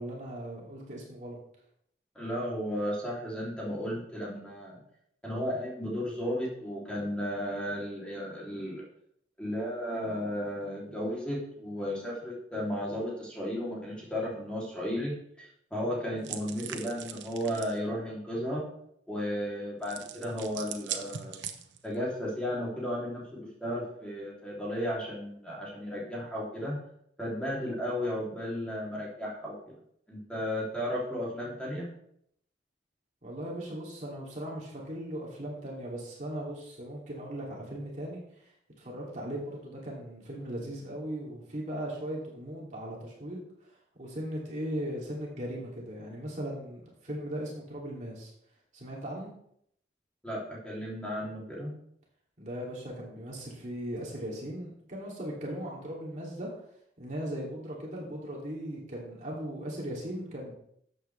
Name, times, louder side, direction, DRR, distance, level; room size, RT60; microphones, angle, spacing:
voice 1, 0.0-1.4 33.2-38.5 38.8-43.4 43.9-48.3 48.7-49.3 52.4-56.5 57.0-60.5, right 1 dB, 40° right, -4 dB, 2.8 m, -38 dB
voice 2, 2.1-4.8 5.2-8.8 9.4-18.6 19.1-21.4 21.8-26.8 27.2-29.5 30.1-31.9 50.2-51.7, equal, 5° left, -5 dB, 3.1 m, -34 dB
sound 1, 16.2-17.8 19.8-21.9, right 9 dB, 85° right, 0.9 m, -40 dB
13.0 x 8.1 x 3.4 m, 0.69 s
head